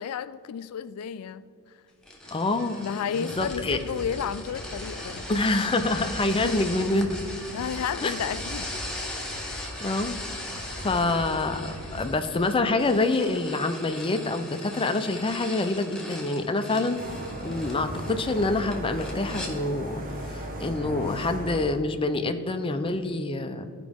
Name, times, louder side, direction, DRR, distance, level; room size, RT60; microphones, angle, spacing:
voice 1, 0.0-1.5 2.7-5.3 6.4-6.6 7.5-8.7, left 8 dB, 90° left, 15 dB, 0.4 m, -32 dB
sound 1, 2.0-19.5, left 1 dB, 5° left, 1.1 m, -39 dB
sound 2, 2.2-12.0, equal, 75° right, 1.6 m, -41 dB
voice 2, 2.3-2.7 3.1-3.8 5.3-7.2 8.0-8.1 9.5-10.3 10.7-17.0 17.4-23.7, left 2 dB, 25° left, 8 dB, 0.5 m, -26 dB
sound 3, 17.0-21.7, right 1 dB, 40° right, 1.0 m, -36 dB
13.5 x 4.9 x 3.5 m, 2.4 s
head